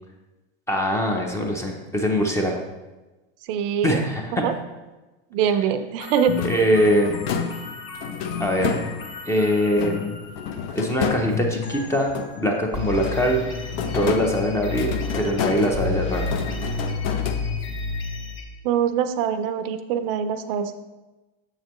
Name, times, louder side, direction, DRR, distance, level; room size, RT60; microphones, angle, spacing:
voice 1, 0.7-2.6 3.8-4.4 5.5-5.6 6.4-7.1 8.4-8.8 9.3-10.1 10.7-13.4 13.9-16.2, equal, 10° left, 2 dB, 0.6 m, -22 dB
voice 2, 3.5-4.0 4.3-4.5 5.3-6.3 18.6-20.8, right 8 dB, 55° right, 10 dB, 0.5 m, -23 dB
sound 1, 6.0-10.9 11.6-12.4 12.7-18.4, left 4 dB, 35° left, 1.1 m, -32 dB
sound 2, 6.3-9.3 9.7-12.6 12.9-17.9, left 7 dB, 60° left, 0.7 m, -30 dB
6.7 x 6.4 x 3.0 m, 1.1 s
supercardioid pair, 145°, 34 cm